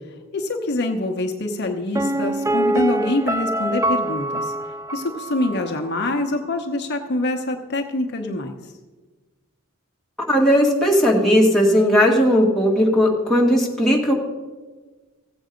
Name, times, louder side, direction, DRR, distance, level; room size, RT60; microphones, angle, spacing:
voice 1, 0.3-4.5 4.9-8.5, left 2 dB, 50° left, 3 dB, 0.9 m, -25 dB
Piano, 1.9-5.7 6.0-6.1, right 1 dB, 15° right, 0.3 m, -24 dB
voice 2, 10.3-14.1, equal, ahead, -4 dB, 1.9 m, -17 dB
16.0 x 7.8 x 5.1 m, 1.3 s
head